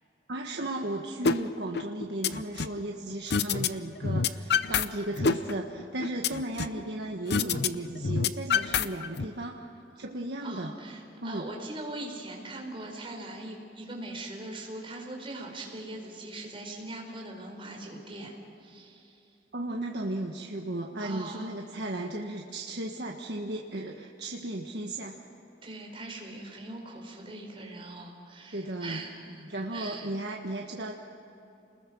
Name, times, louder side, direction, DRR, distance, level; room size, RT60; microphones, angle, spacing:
voice 1, 0.3-9.7 10.0-10.7 11.2-11.5 19.5-25.2 28.5-29.0 29.5-30.9, right 1 dB, 70° right, 0 dB, 1.5 m, -35 dB
sound 1, 1.3-1.4 1.8-2.8 3.3-3.7 4.0-4.9 5.2-6.8 7.3-7.7 8.0-9.3, left 5 dB, 65° left, 0.8 m, -26 dB
voice 2, 10.4-18.3 18.6-19.2 21.0-21.5 25.6-30.1, right 2 dB, 30° right, 1 dB, 4.9 m, -41 dB
29.5 x 21.0 x 6.3 m, 2.8 s
head